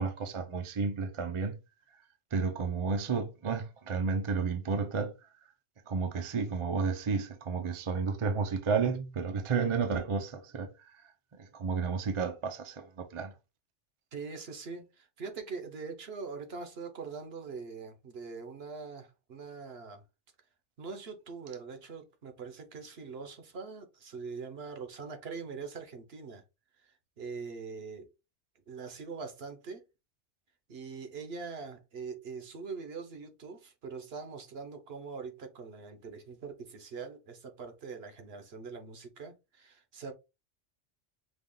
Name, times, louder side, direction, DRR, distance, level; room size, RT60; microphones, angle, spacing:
voice 1, 0.0-1.6 2.3-5.1 5.9-10.7 11.4-13.3, right 5 dB, 35° right, 0.5 m, -31 dB
voice 2, 14.1-20.0 20.8-26.4 26.8-28.1 28.7-29.8 30.7-40.1, right 5 dB, 60° right, 1.1 m, -43 dB
5.2 x 2.4 x 3.7 m
omnidirectional pair, 1.2 m